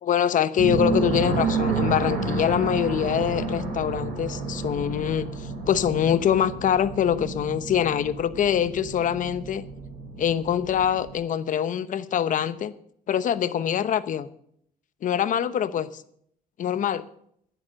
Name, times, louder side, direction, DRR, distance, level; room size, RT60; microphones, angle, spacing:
voice 1, 0.0-9.7 10.2-12.7 13.1-14.3 15.0-16.0 16.6-17.0, left 9 dB, 50° left, 14 dB, 0.9 m, -24 dB
sound 1, 0.6-11.1, right 4 dB, 80° right, 6.2 m, -30 dB
11.0 x 10.0 x 6.4 m, 0.67 s
cardioid pair, 110°, 17 cm